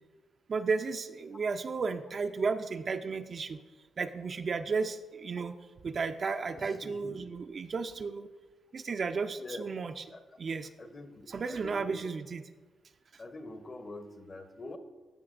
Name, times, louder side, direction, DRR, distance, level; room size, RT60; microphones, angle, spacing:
voice 1, 0.5-3.6 4.0-5.5 5.8-8.3 8.7-10.0 10.4-10.7 11.3-12.4, right 4 dB, 50° right, 8 dB, 0.4 m, -33 dB
voice 2, 6.5-7.3 9.4-9.6 10.1-10.2 10.8-12.1 13.2-14.8, left 2 dB, 35° left, 8 dB, 0.7 m, -45 dB
13.5 x 5.8 x 2.5 m, 1.3 s
cardioid pair, 75°, 0 cm